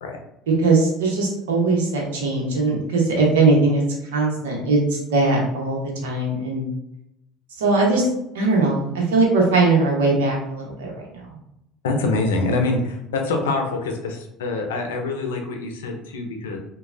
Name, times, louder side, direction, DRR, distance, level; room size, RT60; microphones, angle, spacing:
voice 1, 0.6-3.8 4.1-6.7 7.6-8.1 8.3-11.2, right 3 dB, 85° right, -2 dB, 0.9 m, -20 dB
voice 2, 11.8-16.6, left 3 dB, 90° left, 3 dB, 0.5 m, -25 dB
3.0 x 2.2 x 2.5 m, 0.83 s
hypercardioid pair, 80°, 0 cm